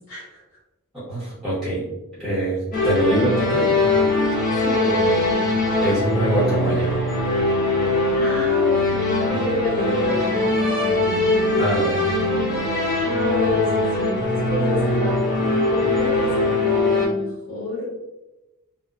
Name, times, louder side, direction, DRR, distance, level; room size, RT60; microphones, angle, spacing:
voice 1, 0.1-0.4 4.5-5.1 8.2-12.3 13.0-15.1 15.6-18.1, left 1 dB, 85° left, -7 dB, 1.1 m, -30 dB
voice 2, 0.9-1.8 2.2-2.6 2.8-3.7 5.8-6.9 11.6-12.0, equal, ahead, -10 dB, 0.8 m, -23 dB
sound 1, 2.7-17.1, left 2 dB, 40° left, 0.6 m, -21 dB
2.7 x 2.1 x 2.3 m, 0.97 s
head